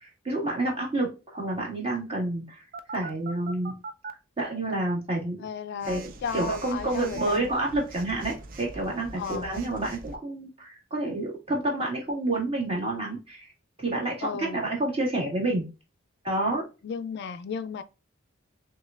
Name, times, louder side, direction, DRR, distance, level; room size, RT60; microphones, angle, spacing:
voice 1, 0.0-2.6 2.9-3.7 4.4-5.4 5.9-13.5 13.8-15.7 16.2-16.6, right 2 dB, 30° right, 1.7 m, -29 dB
Telephone, 2.7-4.1 5.8-10.2, right 3 dB, 45° right, 0.5 m, -42 dB
voice 2, 5.4-7.5 9.2-9.5 14.2-14.6 16.8-17.8, left 6 dB, 55° left, 0.3 m, -34 dB
6.2 x 2.3 x 2.4 m
head